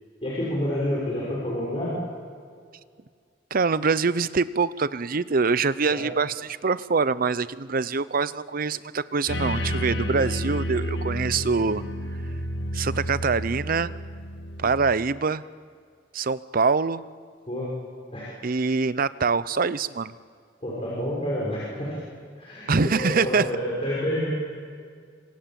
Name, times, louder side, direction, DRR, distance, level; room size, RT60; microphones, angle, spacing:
voice 1, 0.2-2.0 5.9-6.0 17.5-17.7 18.1-18.3 20.6-22.0 22.4-24.3, equal, 30° left, -6 dB, 6.1 m, -28 dB
voice 2, 3.5-11.8 12.7-13.9 14.6-15.4 16.1-17.0 18.4-20.1 22.7-23.5, right 4 dB, 50° right, 16 dB, 0.7 m, -24 dB
sound 1, 9.3-14.9, equal, 75° left, 1.8 m, -30 dB
26.5 x 26.5 x 7.6 m, 2.1 s
head